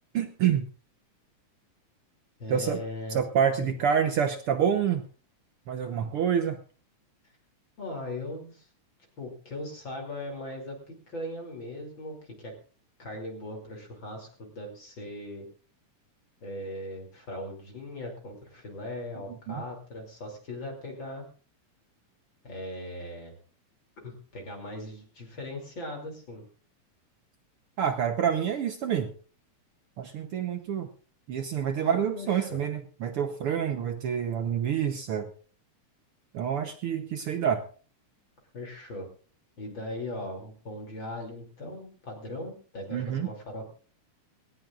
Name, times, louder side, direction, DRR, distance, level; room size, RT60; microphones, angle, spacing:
voice 1, 0.1-0.6 2.5-2.8 3.1-5.0 5.7-6.6 19.5-19.6 27.8-29.1 30.0-30.9 31.3-35.3 36.3-37.6 42.9-43.3, right 8 dB, 65° right, 7 dB, 1.4 m, -27 dB
voice 2, 2.4-3.2 3.6-3.7 7.8-8.7 9.2-12.5 13.0-15.5 16.4-21.2 22.4-23.4 24.0-26.4 31.7-32.6 38.5-39.1 39.6-43.6, left 1 dB, 40° left, 1 dB, 3.5 m, -39 dB
19.0 x 19.0 x 2.5 m, 0.39 s
omnidirectional pair, 3.5 m